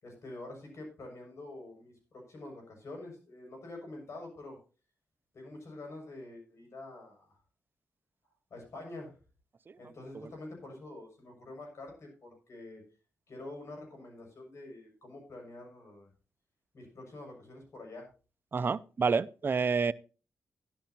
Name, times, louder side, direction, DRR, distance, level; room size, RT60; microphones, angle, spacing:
voice 1, 0.0-4.6 5.3-7.4 8.5-9.2 9.8-12.8 13.3-16.1 16.7-18.1, left 2 dB, 60° left, 2 dB, 6.8 m, -46 dB
voice 2, 18.5-19.9, right 5 dB, 40° right, 17 dB, 0.5 m, -28 dB
13.5 x 11.5 x 2.9 m, 0.34 s
cardioid pair, 70°, 5 cm